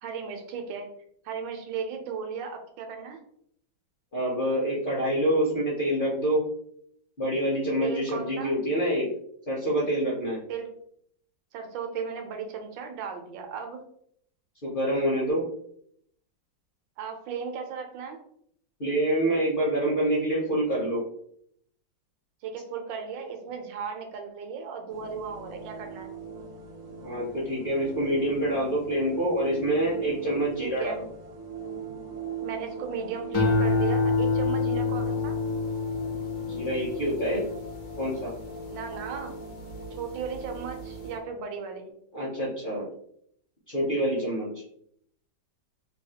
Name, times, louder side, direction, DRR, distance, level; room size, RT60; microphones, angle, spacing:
voice 1, 0.0-0.9 1.2-3.2 7.8-8.6 10.5-10.7 11.5-13.8 17.0-18.2 22.4-26.1 30.6-31.0 32.4-35.4 38.7-39.3 40.0-41.9, right 6 dB, 80° right, 4 dB, 1.3 m, -36 dB
voice 2, 4.1-6.5 7.2-9.1 9.5-10.4 14.6-15.4 18.8-21.0 27.0-31.1 36.5-37.5 38.0-38.3 42.1-42.9 43.7-44.5, right 1 dB, 50° left, -4 dB, 0.6 m, -26 dB
sound 1, 24.9-41.2, right 6 dB, 60° right, 0.8 m, -40 dB
sound 2, 33.3-39.9 40.3-40.8, left 3 dB, 75° left, 1.1 m, -28 dB
3.3 x 2.3 x 2.8 m, 0.69 s
omnidirectional pair, 2.0 m